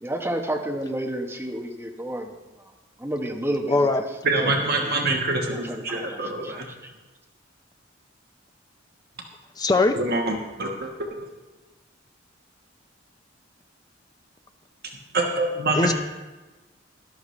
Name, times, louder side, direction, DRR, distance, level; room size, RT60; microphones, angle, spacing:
voice 1, 0.0-2.3 3.0-4.0 4.4-4.5 4.8-4.9 5.5-6.9, right 1 dB, 10° right, 2 dB, 1.0 m, -31 dB
voice 2, 3.7-4.0 9.6-10.0 15.8-15.9, left 2 dB, 20° left, 7 dB, 0.7 m, -20 dB
voice 3, 4.2-6.7 9.9-11.1 15.1-15.9, right 2 dB, 55° right, 1 dB, 1.3 m, -25 dB
13.5 x 11.5 x 3.2 m, 1.2 s
head